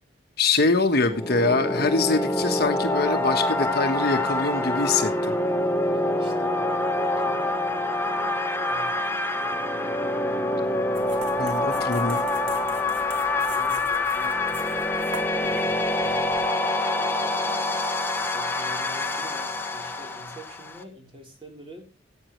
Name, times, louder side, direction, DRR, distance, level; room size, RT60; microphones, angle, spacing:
voice 1, 0.4-5.3 11.3-12.2, left 3 dB, 55° left, 5 dB, 1.3 m, -24 dB
sound 1, 1.0-20.8, left 2 dB, 10° left, 1.1 m, -26 dB
voice 2, 5.9-9.5 11.7-14.9 15.3-17.8 18.2-21.9, equal, 30° right, 1 dB, 3.7 m, -45 dB
sound 2, 10.9-16.4, right 4 dB, 85° right, 2.2 m, -43 dB
17.0 x 9.1 x 3.1 m, 0.32 s
head